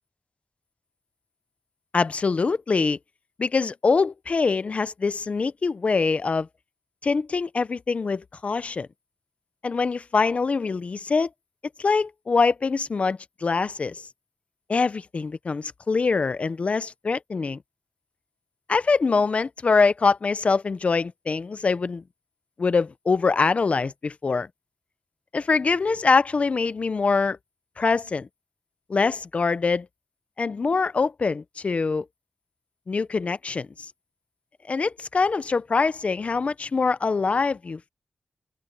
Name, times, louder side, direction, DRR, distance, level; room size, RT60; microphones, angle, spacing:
voice 1, 1.9-3.0 3.4-6.5 7.0-8.9 9.6-11.3 11.8-14.0 14.7-17.6 18.7-22.0 22.6-24.5 25.3-27.4 27.8-28.3 28.9-29.9 30.4-32.0 32.9-33.9 34.7-37.9, left 4 dB, 45° left, 0.6 m, -24 dB
open air
wide cardioid pair, 145°, 3 cm